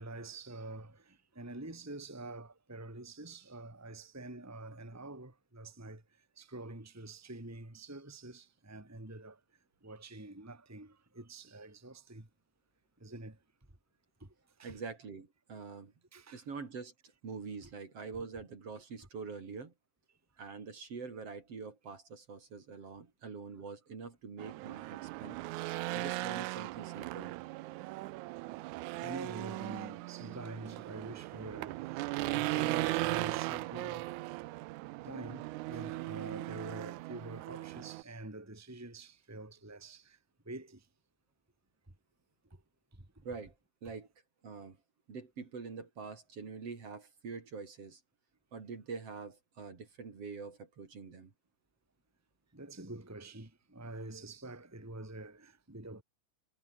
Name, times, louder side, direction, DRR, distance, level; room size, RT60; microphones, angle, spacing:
voice 1, 0.0-6.0 6.4-9.4 9.8-12.3 13.0-13.4 14.2-14.3 14.6-14.8 16.1-16.4 29.0-34.1 35.0-40.2 40.5-40.8 43.8-43.9 52.5-56.0, right 2 dB, 5° right, 2.6 m, -46 dB
voice 2, 14.6-15.9 16.3-16.9 17.2-19.7 20.4-25.4 25.9-27.4 43.2-43.5 43.8-44.1 44.4-44.8 45.1-48.0 48.5-51.3, right 5 dB, 50° right, 4.3 m, -45 dB
Race car auto racing / Engine, 24.4-38.0, right 20 dB, 80° right, 2.0 m, -38 dB
omnidirectional pair, 3.5 m